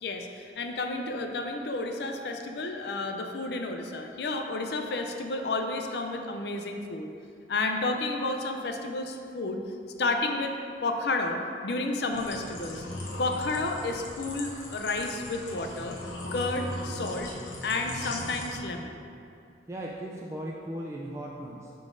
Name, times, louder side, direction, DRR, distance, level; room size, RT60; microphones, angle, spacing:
voice 1, 0.0-7.1 7.5-9.6 10.0-10.6 10.8-12.8 13.2-16.0 16.3-17.3 17.6-19.0, left 2 dB, 60° left, 4 dB, 0.4 m, -31 dB
sound 1, 12.1-18.6, left 1 dB, 80° left, 0.9 m, -38 dB
voice 2, 19.7-21.7, right 1 dB, 15° right, -3 dB, 0.3 m, -37 dB
11.0 x 3.8 x 2.6 m, 2.5 s
head